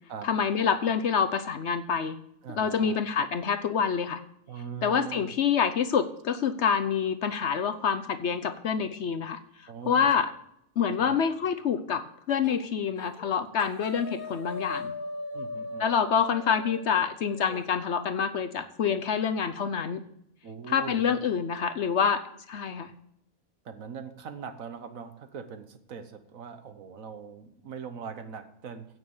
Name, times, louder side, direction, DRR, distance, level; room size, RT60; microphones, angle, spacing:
voice 1, 0.2-2.2 2.5-4.2 4.8-9.4 9.9-10.3 10.8-14.9 15.8-20.0 20.7-22.2 22.5-22.9, left 7 dB, 60° left, 10 dB, 0.9 m, -27 dB
voice 2, 2.4-3.0 4.5-5.3 9.7-10.1 11.0-11.2 15.3-15.9 20.4-21.2 23.6-28.9, right 7 dB, 70° right, 9 dB, 1.5 m, -41 dB
sound 1, 12.4-12.7 13.0-13.3 13.6-17.7, left 2 dB, 75° left, 2.1 m, -39 dB
16.0 x 6.4 x 7.1 m, 0.77 s
omnidirectional pair, 1.5 m